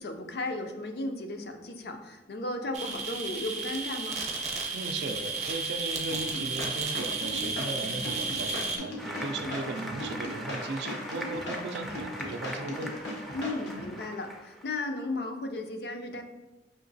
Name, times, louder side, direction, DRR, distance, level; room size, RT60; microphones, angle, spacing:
voice 1, 0.0-4.2 9.2-9.6 13.3-16.2, left 2 dB, 60° left, 5 dB, 0.4 m, -35 dB
sound 1, 2.7-8.8, right 4 dB, 40° right, 0.7 m, -33 dB
voice 2, 4.7-13.0, right 3 dB, 70° right, 8 dB, 0.4 m, -37 dB
sound 2, 6.1-13.9, left 1 dB, 85° left, 0.9 m, -38 dB
Applause, 9.0-14.6, equal, ahead, 0.4 m, -40 dB
5.7 x 2.9 x 2.6 m, 1.1 s
head